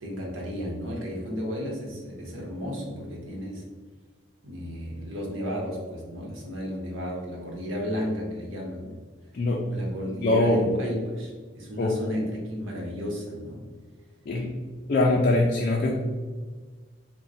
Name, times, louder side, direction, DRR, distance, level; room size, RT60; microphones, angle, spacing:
voice 1, 0.0-3.6 4.4-9.0 9.7-13.6, equal, 75° right, -1 dB, 1.0 m, -33 dB
voice 2, 10.2-10.6 11.8-12.0 14.3-14.5 14.9-15.9, left 2 dB, 45° left, -1 dB, 0.4 m, -22 dB
3.6 x 2.2 x 4.1 m, 1.4 s
head